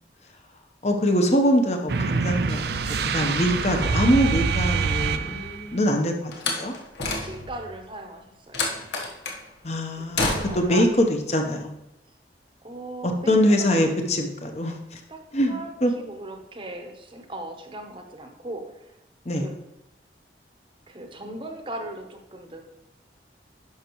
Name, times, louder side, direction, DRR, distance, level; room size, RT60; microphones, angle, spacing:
voice 1, 0.8-2.8 3.1-6.7 9.6-11.7 13.0-15.0 15.3-15.9 19.3-19.5, equal, 40° left, 4 dB, 0.9 m, -23 dB
sound 1, 1.9-5.7, right 5 dB, 70° right, 0.4 m, -25 dB
Slam, 6.3-7.7 8.5-9.4 10.2-10.8, left 3 dB, 85° left, 1.2 m, -28 dB
voice 2, 7.0-8.7 9.9-10.9 12.6-13.9 15.1-15.2 15.5-15.7 16.0-18.9 19.3-19.5 20.9-22.7, right 1 dB, 30° right, 4 dB, 0.9 m, -38 dB
10.5 x 5.8 x 3.1 m, 0.87 s
head